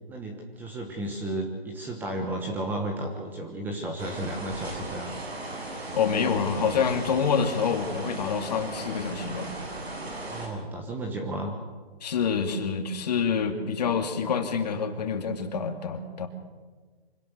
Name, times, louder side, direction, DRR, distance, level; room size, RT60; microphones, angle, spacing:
voice 1, 0.1-5.1 10.2-11.5, right 1 dB, 5° right, 2 dB, 1.1 m, -33 dB
sound 1, 4.0-10.5, right 2 dB, 85° right, 7.0 m, -37 dB
voice 2, 5.9-9.5 12.0-16.3, left 6 dB, 40° left, 6 dB, 2.4 m, -27 dB
25.0 x 18.0 x 6.8 m, 1.4 s
hypercardioid pair, 155°, 31 cm